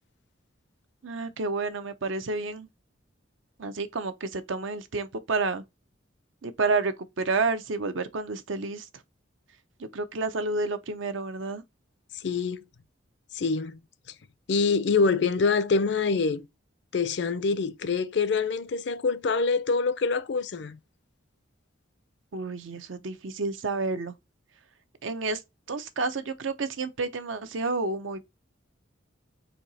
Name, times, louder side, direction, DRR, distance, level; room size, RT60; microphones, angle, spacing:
voice 1, 1.0-2.7 3.6-5.6 6.4-8.9 9.9-11.6 22.3-24.1 25.0-25.4 25.7-28.2, right 3 dB, 80° right, 0.7 m, -30 dB
voice 2, 12.1-12.7 13.3-13.8 14.5-16.4 16.9-20.8, left 4 dB, 60° left, 0.5 m, -25 dB
4.4 x 2.8 x 4.0 m
head